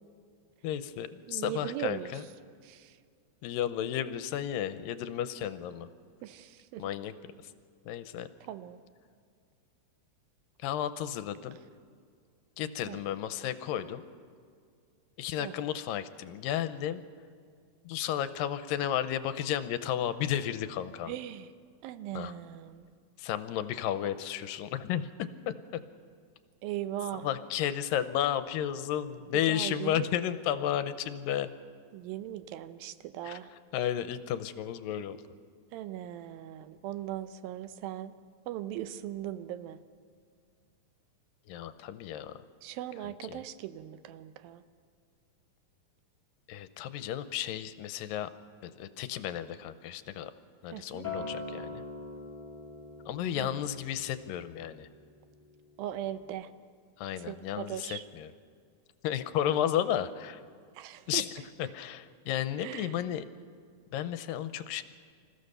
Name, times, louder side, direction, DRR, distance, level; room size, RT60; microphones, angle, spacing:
voice 1, 0.6-2.2 3.4-5.9 6.8-7.1 7.9-8.3 10.6-11.6 12.6-14.0 15.2-17.0 17.8-21.1 22.1-22.3 23.2-25.5 27.1-31.5 33.2-35.2 41.5-42.4 43.0-43.4 46.5-48.3 48.6-50.3 50.6-51.8 53.1-54.9 57.0-58.3 59.0-60.4 61.1-63.3 63.9-64.8, left 10 dB, 80° left, 12 dB, 2.3 m, -33 dB
voice 2, 1.3-2.1 2.7-2.9 6.2-6.8 8.5-8.8 12.9-13.0 15.4-15.5 21.1-21.5 21.8-22.9 26.6-27.3 29.5-30.1 31.9-33.5 35.7-38.1 38.5-39.8 42.6-44.6 50.7-51.1 53.4-53.5 55.8-56.5 57.3-58.0 60.8-61.2 62.6-62.9, right 12 dB, 85° right, 12 dB, 2.5 m, -39 dB
Acoustic guitar, 51.0-56.2, left 3 dB, 20° left, 1.3 m, -43 dB
26.0 x 15.0 x 6.7 m, 2.1 s
omnidirectional pair, 4.1 m